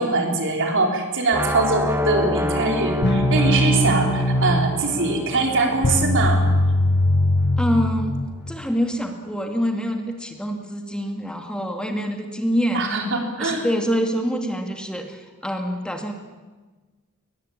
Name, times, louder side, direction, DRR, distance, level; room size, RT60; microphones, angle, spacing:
voice 1, 0.0-6.4 12.7-13.6, right 3 dB, 60° right, 2 dB, 4.5 m, -22 dB
sound 1, 1.3-7.2, left 1 dB, 10° right, 2.0 m, -28 dB
sound 2, 3.0-8.6, left 1 dB, 50° left, 1.4 m, -21 dB
voice 2, 7.6-13.0 13.4-16.1, equal, 5° left, 4 dB, 2.1 m, -26 dB
22.0 x 21.0 x 8.7 m, 1.3 s
head